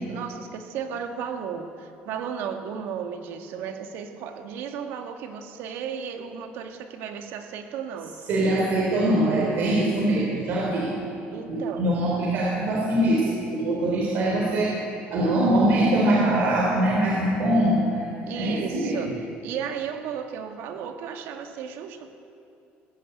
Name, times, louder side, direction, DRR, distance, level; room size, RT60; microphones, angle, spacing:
voice 1, 0.1-8.2 11.3-11.8 18.3-19.1 19.4-22.1, right 7 dB, 75° right, 5 dB, 1.9 m, -34 dB
voice 2, 8.3-10.9 11.5-14.8 15.1-18.9, right 1 dB, 55° right, -2 dB, 3.6 m, -23 dB
20.5 x 15.5 x 8.5 m, 2.7 s
cardioid pair, 160°, 4 cm